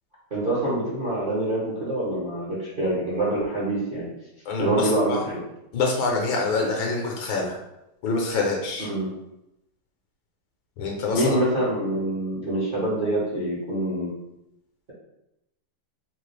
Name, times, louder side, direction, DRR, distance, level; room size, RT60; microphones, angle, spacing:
voice 1, 0.3-4.1 4.6-5.4 8.8-9.1 11.1-14.1, right 1 dB, 40° right, -9 dB, 0.7 m, -25 dB
voice 2, 4.5-5.2 5.7-7.6 8.0-8.9 10.8-11.4, left 3 dB, 75° left, 1 dB, 1.4 m, -26 dB
3.8 x 2.4 x 3.1 m, 0.88 s
omnidirectional pair, 2.4 m